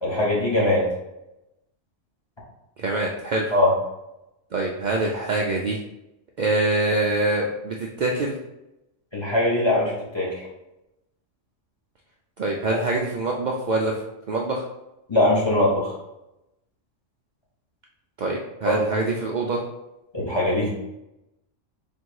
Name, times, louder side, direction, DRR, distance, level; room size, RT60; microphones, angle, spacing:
voice 1, 0.0-0.9 3.5-3.7 9.1-10.5 12.7-12.8 15.1-15.9 18.7-18.8 20.1-20.7, left 1 dB, 25° left, -6 dB, 1.0 m, -21 dB
voice 2, 2.8-3.6 4.5-5.8 6.4-8.4 12.4-14.6 18.2-19.6, right 2 dB, 75° right, -1 dB, 0.4 m, -25 dB
3.6 x 2.5 x 4.6 m, 0.92 s
omnidirectional pair, 1.3 m